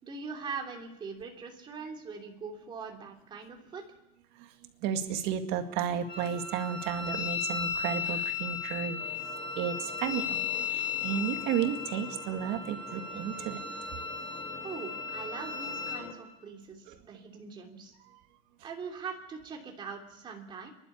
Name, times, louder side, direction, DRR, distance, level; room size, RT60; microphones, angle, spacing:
voice 1, 0.0-3.8 14.6-17.9 18.6-20.7, right 5 dB, 25° right, 1 dB, 3.0 m, -42 dB
voice 2, 4.4-9.0 9.6-13.6 16.9-17.0 18.0-18.2, right 8 dB, 75° right, 6 dB, 2.1 m, -33 dB
Wind instrument woodwind instrument, 6.1-16.0, left 6 dB, 30° left, 3.4 m, -36 dB
sound 1, 9.0-16.1, left 6 dB, 80° left, 4.0 m, -47 dB
29.0 x 12.0 x 8.5 m, 0.93 s
cardioid pair, 165°, 17 cm